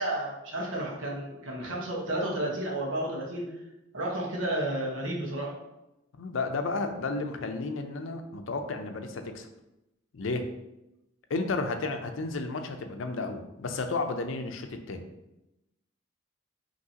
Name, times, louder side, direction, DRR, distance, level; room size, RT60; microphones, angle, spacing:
voice 1, 0.0-3.5 3.9-5.5, right 1 dB, 85° right, -2 dB, 1.2 m, -32 dB
voice 2, 6.1-9.5 10.1-10.4 11.3-15.0, left 3 dB, 85° left, 6 dB, 0.5 m, -32 dB
5.5 x 2.9 x 2.8 m, 0.92 s
head